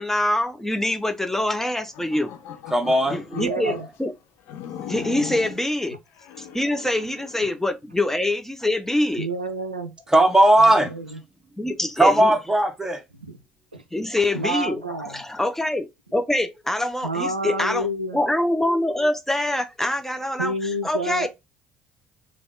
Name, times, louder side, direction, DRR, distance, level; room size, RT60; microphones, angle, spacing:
voice 1, 0.0-2.3 3.1-4.1 4.9-6.0 6.4-9.3 11.6-12.3 13.9-17.9 18.1-21.3, left 1 dB, 5° left, 0.5 m, -25 dB
sound 1, 1.8-3.9 4.5-5.6 6.2-7.6, left 9 dB, 60° left, 0.5 m, -38 dB
voice 2, 2.7-3.2 10.1-10.9 12.0-13.0, right 1 dB, 10° right, 0.9 m, -17 dB
voice 3, 3.3-3.9 9.2-9.9 10.6-11.2 13.2-13.4 13.7-13.8 14.3-15.2 17.0-18.2 20.4-21.3, right 1 dB, 90° right, 0.3 m, -29 dB
3.4 x 2.3 x 3.6 m
figure-of-eight pair, 50°, 5 cm